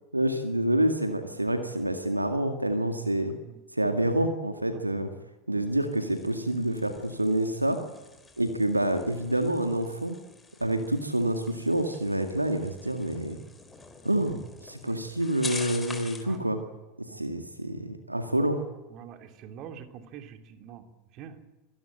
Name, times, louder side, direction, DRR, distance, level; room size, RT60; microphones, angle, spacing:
voice 1, 0.1-3.3 3.7-5.1 5.5-7.8 8.4-10.2 10.6-13.4 14.0-16.6 17.1-18.6, right 1 dB, 85° right, 7 dB, 2.0 m, -27 dB
sound 1, 5.7-16.4, left 3 dB, 10° left, 4.4 m, -45 dB
voice 2, 16.2-16.6 17.1-17.3 18.9-20.8 21.2-21.4, right 8 dB, 45° right, 7 dB, 3.1 m, -45 dB
25.5 x 19.0 x 9.1 m, 1.1 s
figure-of-eight pair, 80°, 0 cm